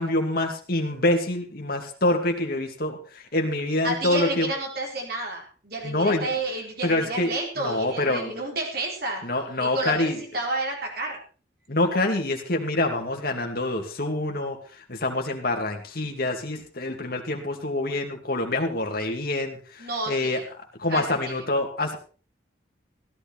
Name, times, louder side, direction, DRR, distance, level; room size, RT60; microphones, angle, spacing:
voice 1, 0.0-3.0 3.3-4.5 5.8-6.3 6.8-7.3 7.6-8.3 9.2-10.2 11.7-20.4 20.8-22.0, left 2 dB, 55° left, 3 dB, 2.5 m, -26 dB
voice 2, 3.8-9.2 9.6-11.2 19.8-20.5 20.9-21.2, right 2 dB, 55° right, 0 dB, 4.6 m, -30 dB
16.5 x 11.5 x 4.3 m, 0.36 s
head